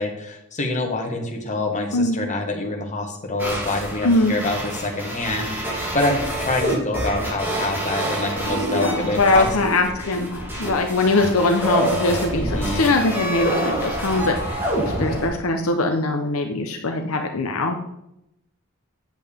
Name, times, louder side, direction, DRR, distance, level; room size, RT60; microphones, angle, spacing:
voice 1, 0.0-9.5 12.3-12.9, left 2 dB, 35° left, 1 dB, 1.6 m, -26 dB
sound 1, 3.4-15.3, right 1 dB, 10° right, 2.8 m, -27 dB
voice 2, 4.0-4.3 8.7-17.8, left 2 dB, 70° left, 4 dB, 0.8 m, -22 dB
9.0 x 7.7 x 3.6 m, 0.81 s
head